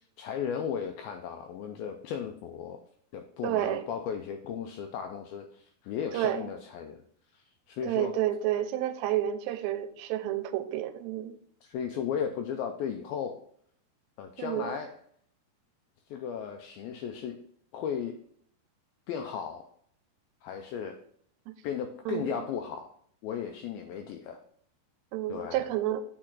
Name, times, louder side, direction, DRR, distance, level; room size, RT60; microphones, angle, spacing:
voice 1, 0.2-2.8 3.1-7.0 7.3-8.1 11.6-13.4 14.2-15.0 16.1-17.4 17.7-18.2 19.1-19.7 20.4-21.0 21.6-22.9 23.2-24.4 25.3-25.7, left 7 dB, 85° left, 5 dB, 2.1 m, -35 dB
voice 2, 3.4-3.8 6.1-6.5 7.8-11.4 14.4-14.8 21.5-21.6 22.1-22.4 25.1-26.0, right 12 dB, 90° right, 10 dB, 2.8 m, -30 dB
8.8 x 4.8 x 3.9 m, 0.63 s
omnidirectional pair, 4.9 m